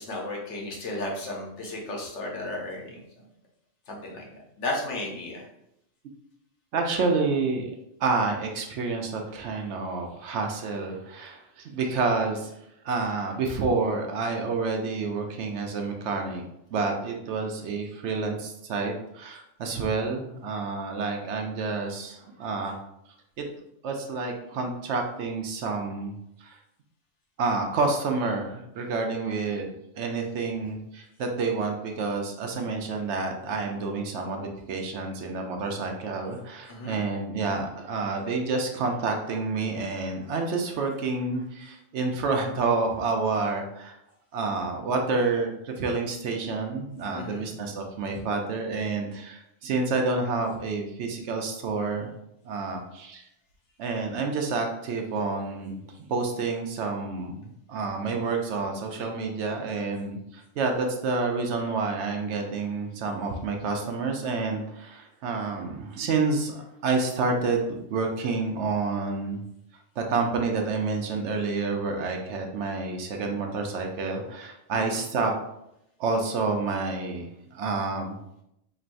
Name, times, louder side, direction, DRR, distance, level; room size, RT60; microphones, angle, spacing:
voice 1, 0.0-3.0 3.9-4.3 4.6-5.5 36.7-37.0 47.1-47.5 74.7-75.0, left 2 dB, 70° left, -1 dB, 1.2 m, -34 dB
voice 2, 6.7-7.7 8.0-12.5 12.8-16.4 16.7-22.8 23.4-23.5 23.8-26.6 27.4-29.7 30.0-44.0 44.3-52.1 52.4-53.2 53.8-55.8 56.1-69.4 70.0-75.3 76.0-78.4, right 4 dB, 70° right, 3 dB, 0.9 m, -29 dB
4.4 x 3.0 x 2.5 m, 0.82 s
omnidirectional pair, 1.2 m